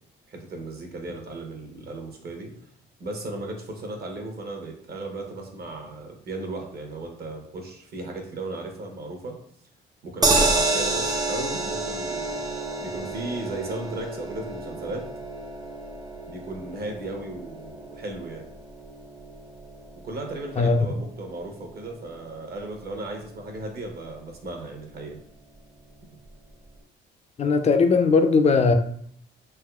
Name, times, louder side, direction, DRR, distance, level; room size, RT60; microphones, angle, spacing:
voice 1, 0.3-2.5 3.0-9.4 10.0-12.4 12.8-15.0 16.3-18.5 20.0-25.2, right 2 dB, 50° right, 2 dB, 0.9 m, -36 dB
sound 1, 10.2-22.5 22.8-22.9 23.2-23.3, right 2 dB, 20° right, 0.6 m, -29 dB
voice 2, 27.4-28.7, left 4 dB, 35° left, 7 dB, 0.4 m, -19 dB
3.4 x 3.0 x 2.3 m, 0.62 s
cardioid pair, 90°, 20 cm